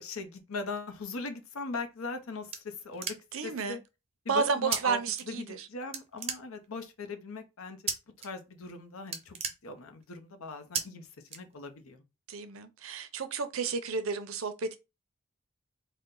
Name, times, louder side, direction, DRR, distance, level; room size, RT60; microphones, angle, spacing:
voice 1, 0.0-3.2 3.4-3.8 4.2-5.0 5.3-7.9 8.2-12.0, left 3 dB, 90° left, 0.7 m, -40 dB
sound 1, 1.8-3.5 4.7-4.8 5.1-5.7 5.9-6.9 7.9-8.3 8.6-8.7 9.0-10.2 10.7-10.8 11.3-11.9, right 6 dB, 30° right, 0.5 m, -35 dB
voice 2, 3.3-3.8 4.3-5.7 12.3-14.8, right 5 dB, 80° right, 0.6 m, -31 dB
4.1 x 2.2 x 3.7 m
head